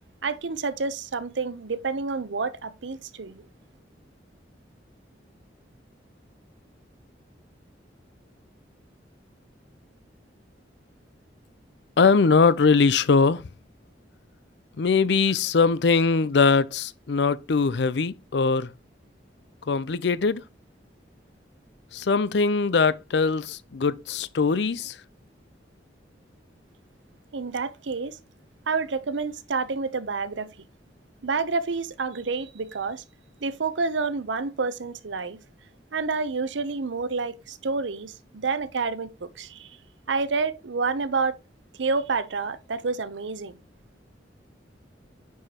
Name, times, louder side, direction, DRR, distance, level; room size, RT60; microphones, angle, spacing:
voice 1, 0.2-3.4 27.3-28.2 28.7-30.5 31.2-33.0 33.4-35.4 35.9-39.1 39.4-39.8 40.1-41.4 41.8-43.5, right 4 dB, 80° right, 0.7 m, -28 dB
voice 2, 12.0-13.4 14.8-18.7 19.7-20.4 21.9-24.9, left 4 dB, 65° left, 0.5 m, -21 dB
9.1 x 4.8 x 2.9 m
head